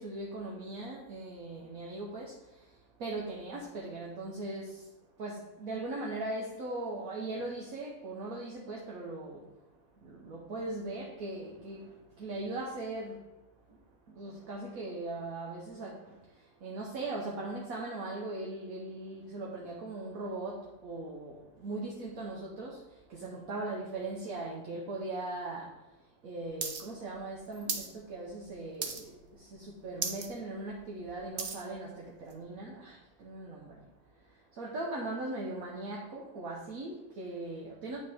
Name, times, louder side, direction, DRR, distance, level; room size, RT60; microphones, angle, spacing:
voice 1, 0.0-2.3 3.0-4.8 5.2-9.4 10.0-11.9 12.2-13.2 14.2-16.0 16.6-22.8 23.1-25.7 26.2-29.2 29.5-33.7 34.6-38.0, right 2 dB, 55° right, -3 dB, 1.1 m, -39 dB
sound 1, 26.6-26.8 27.1-27.9 28.3-28.5 28.8-29.3 29.6-29.7 29.9-30.3 30.7-31.6 32.3-32.4, right 6 dB, 75° right, 0.6 m, -36 dB
9.0 x 5.2 x 3.6 m, 0.99 s
omnidirectional pair, 2.3 m